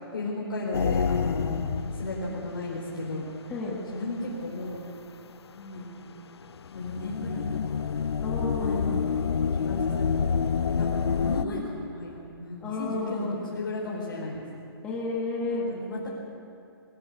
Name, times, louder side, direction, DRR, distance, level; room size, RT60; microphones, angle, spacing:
voice 1, 0.0-1.6 1.9-2.2 2.4-3.2 3.9-4.8 5.5-5.9 6.7-7.8 8.6-9.1 9.6-10.4 10.7-14.4 15.5-16.1, left 2 dB, 55° left, -4 dB, 4.9 m, -35 dB
sound 1, 0.7-2.7 3.0-3.1 4.0-4.2 6.4-11.4, left 6 dB, 80° left, 0.8 m, -27 dB
voice 2, 8.2-9.0 12.6-13.4 14.8-15.7, left 3 dB, 5° left, -5 dB, 2.1 m, -31 dB
24.0 x 17.5 x 8.6 m, 2.6 s
hypercardioid pair, 180°, 13 cm